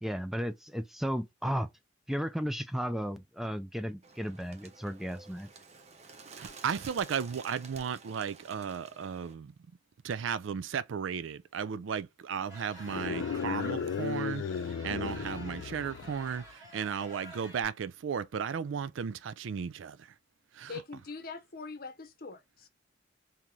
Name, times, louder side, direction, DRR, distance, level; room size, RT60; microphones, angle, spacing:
voice 1, 0.0-1.7 2.1-5.5, equal, ahead, 0.3 m, -34 dB
Bird, 4.0-9.3, right 4 dB, 35° right, 0.7 m, -51 dB
voice 2, 6.3-9.5 10.0-14.4 14.8-16.4 16.7-20.0 20.6-20.7, right 7 dB, 85° right, 0.4 m, -35 dB
sound 1, 12.5-17.6, right 1 dB, 15° right, 2.1 m, -50 dB
sound 2, 12.8-16.4, left 6 dB, 85° left, 0.3 m, -35 dB
voice 3, 20.7-22.7, left 4 dB, 50° left, 0.7 m, -43 dB
3.7 x 2.8 x 3.0 m
head